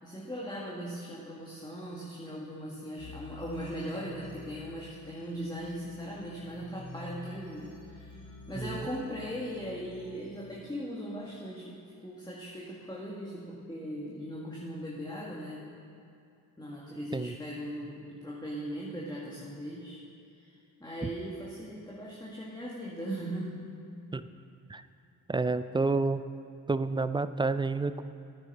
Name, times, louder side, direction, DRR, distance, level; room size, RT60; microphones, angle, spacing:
voice 1, 0.0-15.7 16.6-20.0 20.4-23.6, equal, 10° left, -5 dB, 2.0 m, -39 dB
sound 1, 3.0-10.4, left 3 dB, 85° left, 3.0 m, -49 dB
voice 2, 8.6-8.9 17.1-17.4 24.1-24.2 24.7-24.8 25.3-26.2 26.7-28.0, right 3 dB, 10° right, 13 dB, 0.3 m, -29 dB
9.7 x 8.9 x 5.7 m, 2.6 s
hypercardioid pair, 45°, 44 cm